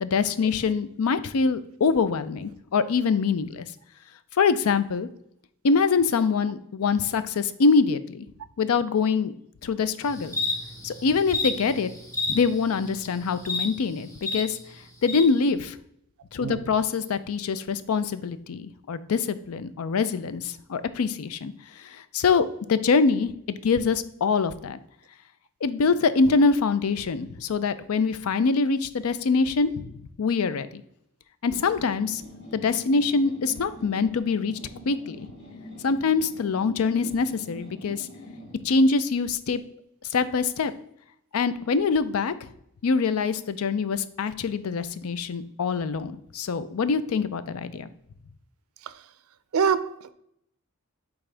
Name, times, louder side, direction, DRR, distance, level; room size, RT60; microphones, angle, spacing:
voice 1, 0.0-3.6 4.4-5.1 5.6-8.3 8.6-9.3 9.6-10.3 10.8-11.9 12.3-14.6 15.0-15.8 16.3-21.5 21.8-23.3 23.6-24.8 25.6-29.9 30.2-30.8 31.4-32.2 32.5-34.5 34.9-35.3 35.8-38.1 38.6-39.6 40.1-40.7 41.3-42.3 42.8-47.9, left 4 dB, 85° left, 0.5 m, -24 dB
sound 1, 10.0-14.4 15.0-15.2, left 3 dB, 15° left, 0.8 m, -31 dB
sound 2, 31.6-38.7, left 1 dB, 55° left, 2.1 m, -44 dB
voice 2, 49.5-50.1, right 6 dB, 80° right, 0.4 m, -24 dB
8.6 x 3.6 x 3.3 m
head